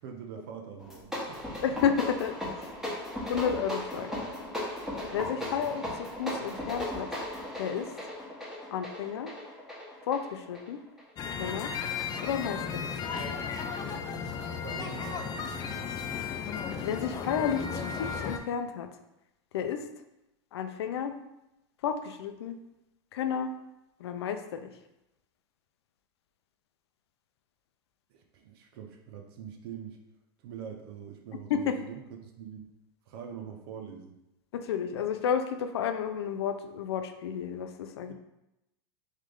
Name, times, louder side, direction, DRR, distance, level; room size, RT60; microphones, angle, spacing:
voice 1, 0.0-1.6 5.4-5.7 14.2-16.0 28.1-30.0 30.4-32.7 33.1-34.2 38.1-38.2, right 7 dB, 70° right, 3 dB, 0.6 m, -44 dB
sound 1, 0.8-11.1, left 1 dB, 5° right, 1.3 m, -37 dB
voice 2, 1.6-2.7 3.3-4.2 5.1-7.1 7.6-7.9 8.7-9.3 10.1-10.8 11.4-11.7 12.2-12.9 16.8-18.9 19.5-19.8 20.5-21.1 21.8-22.6 23.1-23.5 24.0-24.7 31.5-31.7 34.5-38.1, left 7 dB, 85° left, 8 dB, 0.5 m, -31 dB
sound 2, 11.2-18.4, left 6 dB, 30° left, 0.4 m, -35 dB
3.2 x 3.2 x 3.7 m, 0.91 s
supercardioid pair, 120°, 13 cm